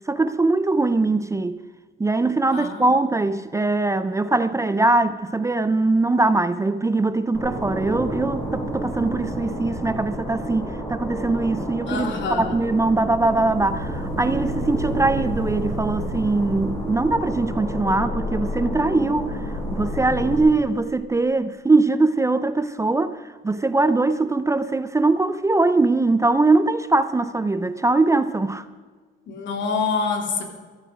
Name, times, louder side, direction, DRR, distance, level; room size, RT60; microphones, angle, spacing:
voice 1, 0.1-1.6 2.0-19.4 19.7-28.6, right 3 dB, 15° right, 0.5 m, -21 dB
voice 2, 2.5-2.8 11.9-12.6 29.3-30.4, left 5 dB, 65° left, 2.7 m, -26 dB
sound 1, 7.3-20.4, equal, 15° left, 4.6 m, -29 dB
14.0 x 13.5 x 5.1 m
cardioid pair, 130°, 21 cm